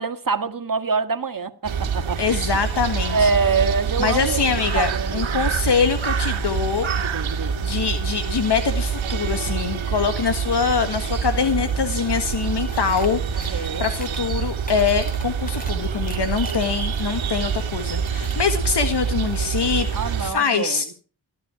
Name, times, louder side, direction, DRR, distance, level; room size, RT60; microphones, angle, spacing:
voice 1, 0.0-2.6 3.1-5.5 7.0-7.6 13.5-13.9 19.9-20.8, right 4 dB, 45° right, 1.7 m, -25 dB
sound 1, 1.6-20.3, right 6 dB, 80° right, 2.1 m, -26 dB
voice 2, 2.2-3.3 4.0-6.9 7.6-19.9 20.2-20.9, left 6 dB, 60° left, 1.6 m, -24 dB
sound 2, 11.8-12.0 12.3-13.1 13.4-14.2 14.5-15.7 16.0-17.6 17.9-18.4, left 1 dB, 20° left, 3.5 m, -42 dB
17.0 x 11.5 x 4.7 m
cardioid pair, 55°, 46 cm